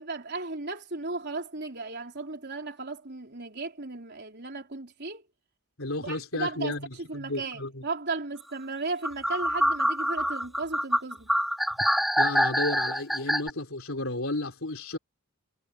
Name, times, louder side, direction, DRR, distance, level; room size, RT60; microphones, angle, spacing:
voice 1, 0.0-5.2 6.0-6.8 7.1-11.3, right 3 dB, 50° right, 4.0 m, -35 dB
voice 2, 5.8-7.8 12.2-15.0, left 2 dB, 65° left, 4.3 m, -32 dB
sound 1, 9.0-13.5, equal, ahead, 4.2 m, -25 dB
head